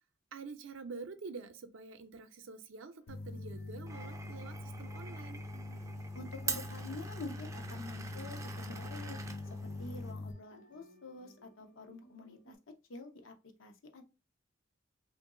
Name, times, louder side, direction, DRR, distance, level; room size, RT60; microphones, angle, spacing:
voice 1, 0.3-5.4, right 4 dB, 75° right, 0.5 m, -47 dB
sound 1, 3.0-12.6, equal, 65° left, 1.1 m, -64 dB
sound 2, 3.1-10.3, left 2 dB, 50° left, 0.4 m, -43 dB
Glass, 3.9-10.1, right 5 dB, 15° right, 0.3 m, -45 dB
voice 2, 6.1-9.2 9.6-12.5 12.9-13.3 13.6-14.0, left 3 dB, 90° left, 0.7 m, -47 dB
3.0 x 2.5 x 3.6 m
head